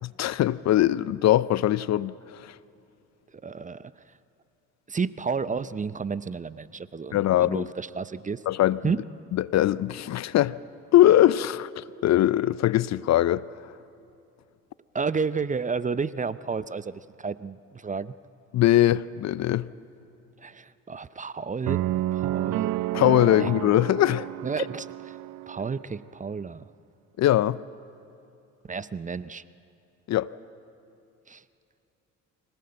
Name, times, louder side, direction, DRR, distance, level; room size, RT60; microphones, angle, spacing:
voice 1, 0.0-2.6 7.1-7.7 8.5-8.8 9.3-10.6 10.9-13.4 18.5-19.7 22.9-24.3 24.6-24.7 27.2-27.6 30.1-30.3, left 13 dB, 50° left, 0.6 m, -21 dB
voice 2, 3.4-3.9 4.9-8.4 8.8-9.0 14.9-18.1 20.4-21.8 22.1-22.7 23.4-23.5 24.4-25.2 25.5-26.6 28.7-29.4 31.3-31.4, right 5 dB, 20° right, 0.6 m, -31 dB
sound 1, 21.7-25.8, right 15 dB, 60° right, 0.7 m, -30 dB
25.0 x 17.0 x 7.8 m
hypercardioid pair, 60°, 36 cm